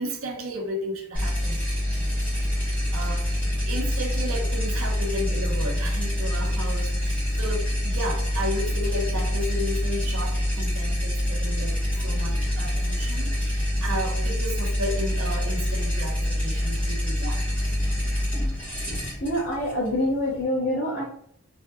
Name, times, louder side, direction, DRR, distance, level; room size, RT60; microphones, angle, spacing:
voice 1, 0.0-1.6 2.9-3.4 3.7-17.5, equal, 75° right, 0.7 m, -33 dB
sound 1, 1.1-20.4, equal, 5° left, 1.5 m, -26 dB
voice 2, 19.2-21.0, left 1 dB, 50° left, 1.2 m, -25 dB
3.6 x 3.3 x 2.5 m
head